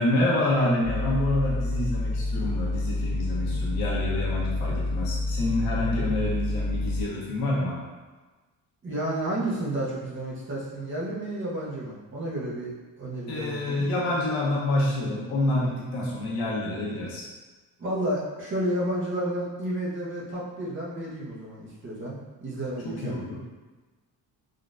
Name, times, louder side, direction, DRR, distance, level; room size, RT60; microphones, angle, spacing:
voice 1, 0.0-7.8 13.3-17.3 22.8-23.4, left 1 dB, 85° left, -5 dB, 1.0 m, -27 dB
sound 1, 0.8-7.0, left 2 dB, 30° left, 0.9 m, -28 dB
voice 2, 8.8-13.8 17.8-23.4, right 1 dB, 35° right, -5 dB, 0.7 m, -31 dB
3.7 x 2.2 x 2.5 m, 1.3 s
cardioid pair, 155°, 35 cm